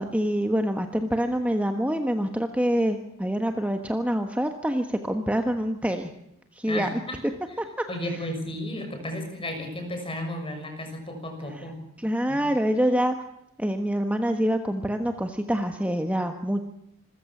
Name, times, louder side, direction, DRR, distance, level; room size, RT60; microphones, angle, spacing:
voice 1, 0.0-6.1 6.5-6.9 7.6-7.7 11.6-11.7 12.0-13.1 13.6-16.6, equal, 5° right, 5 dB, 1.3 m, -26 dB
voice 2, 6.6-7.2 7.9-11.8 12.3-12.4, left 1 dB, 25° left, 4 dB, 6.4 m, -33 dB
26.5 x 15.0 x 7.3 m, 0.84 s
head